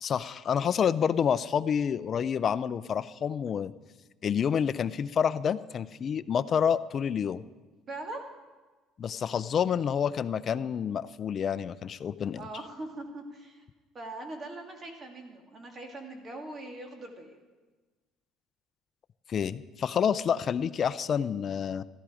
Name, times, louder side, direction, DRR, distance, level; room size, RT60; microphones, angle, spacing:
voice 1, 0.0-3.7 4.2-7.4 9.0-12.4 19.3-21.8, left 7 dB, 35° left, 14 dB, 0.5 m, -28 dB
voice 2, 7.9-8.2 12.3-13.6 13.9-17.4, right 2 dB, 25° right, 3 dB, 2.2 m, -41 dB
15.0 x 13.0 x 5.0 m, 1.3 s
cardioid pair, 145°, 0 cm